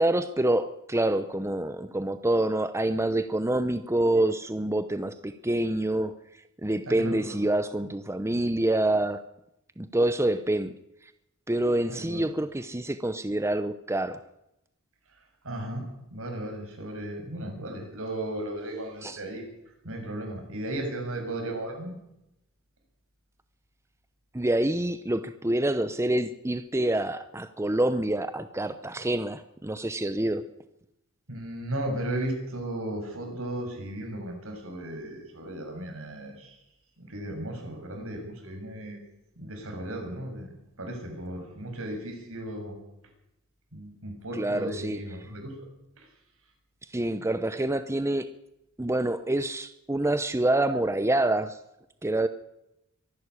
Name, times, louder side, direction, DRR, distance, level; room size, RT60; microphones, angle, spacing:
voice 1, 0.0-6.1 6.6-9.2 9.8-10.7 11.5-14.2 19.0-19.2 24.3-30.5 44.3-45.0 46.9-48.3 48.8-51.6 52.0-52.3, right 1 dB, 15° right, 11 dB, 0.7 m, -26 dB
voice 2, 6.9-7.4 11.9-12.3 15.4-15.8 16.1-19.4 19.8-22.0 31.3-36.5 37.0-39.0 39.4-40.5 40.8-42.8 43.7-45.5, right 1 dB, 70° right, 3 dB, 6.8 m, -35 dB
24.0 x 12.0 x 9.8 m, 0.87 s
head